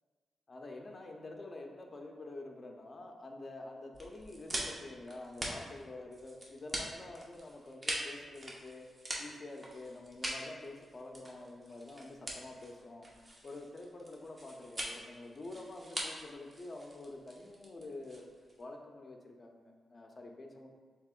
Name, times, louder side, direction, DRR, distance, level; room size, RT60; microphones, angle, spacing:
voice 1, 0.5-18.3 18.6-20.7, left 2 dB, 40° left, 2 dB, 0.6 m, -47 dB
sound 1, 3.9-18.6, right 1 dB, 30° right, 0.8 m, -43 dB
7.1 x 2.9 x 2.4 m, 1.4 s
cardioid pair, 80°, 0 cm